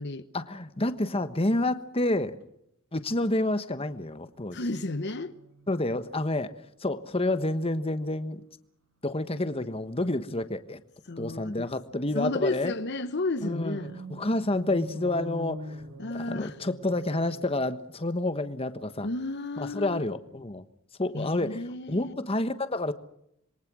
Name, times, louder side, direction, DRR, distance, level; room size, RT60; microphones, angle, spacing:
voice 1, 0.3-2.3 2.9-4.6 5.7-6.5 6.8-8.4 9.0-10.8 11.2-12.7 13.4-13.8 14.1-15.8 16.1-19.1 19.6-20.7 21.0-22.9, left 2 dB, 30° left, 1.3 m, -29 dB
sound 1, 4.1-6.5 6.8-7.0 7.3-7.7 9.0-9.4 11.8-17.5, left 1 dB, 65° right, 4.4 m, -45 dB
voice 2, 4.5-5.4 11.1-11.7 12.1-14.0 16.0-16.6 19.0-20.0 21.1-22.1, left 2 dB, 55° left, 1.0 m, -32 dB
27.0 x 23.0 x 6.2 m
head